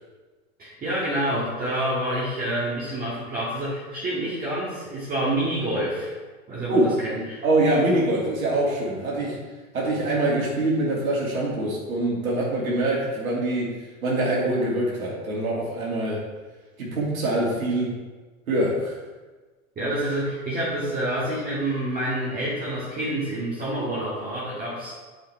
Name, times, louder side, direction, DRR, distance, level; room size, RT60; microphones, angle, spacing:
voice 1, 0.6-6.1 6.5-7.4 19.8-24.9, right 1 dB, 20° right, -8 dB, 2.2 m, -28 dB
voice 2, 7.4-9.4 9.7-16.3 16.8-18.0 18.5-19.0, right 1 dB, 70° right, -4 dB, 2.3 m, -24 dB
9.8 x 5.2 x 3.3 m, 1.3 s
figure-of-eight pair, 100°, 43 cm